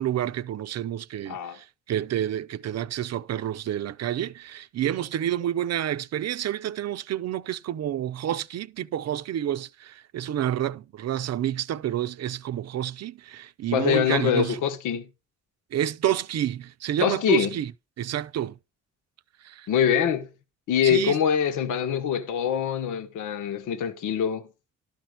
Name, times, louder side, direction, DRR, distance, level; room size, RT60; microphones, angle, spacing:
voice 1, 0.0-14.6 15.7-17.7 18.0-18.6 19.4-19.7 20.8-21.2, right 11 dB, 60° right, 0.7 m, -29 dB
voice 2, 1.3-1.6 13.7-15.1 17.0-17.5 19.7-20.3 20.7-24.5, left 8 dB, 85° left, 1.2 m, -24 dB
12.5 x 4.5 x 6.5 m
cardioid pair, 90°, 30 cm